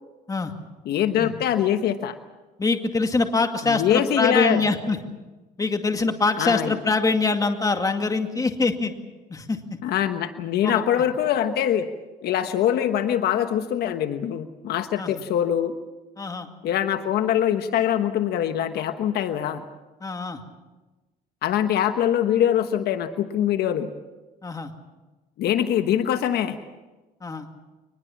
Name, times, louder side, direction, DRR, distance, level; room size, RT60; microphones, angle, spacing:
voice 1, 0.9-2.2 3.7-4.6 6.4-6.7 9.8-11.9 12.2-15.7 16.6-19.6 21.4-23.9 25.4-26.6, left 10 dB, 70° left, 9 dB, 1.2 m, -23 dB
voice 2, 2.6-5.0 5.6-8.9 9.3-9.6 10.6-11.0 15.0-15.2 16.2-16.5 20.0-20.4 24.4-24.7 27.2-27.5, left 3 dB, 20° left, 5 dB, 2.2 m, -24 dB
23.5 x 20.5 x 7.2 m, 1.2 s
cardioid pair, 110°, 17 cm